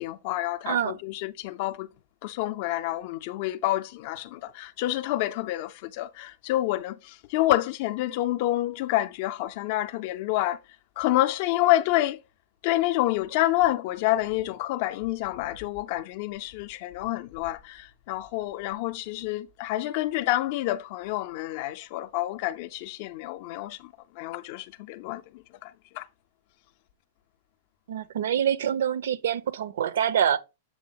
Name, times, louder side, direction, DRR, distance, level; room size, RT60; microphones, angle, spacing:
voice 1, 0.0-1.9 2.2-10.6 11.0-12.2 12.6-25.2 25.6-26.1, left 15 dB, 40° left, 0.4 m, -28 dB
voice 2, 0.7-1.0 27.9-30.4, right 9 dB, 70° right, 0.6 m, -25 dB
7.5 x 3.4 x 3.7 m
supercardioid pair, 170°, 0 cm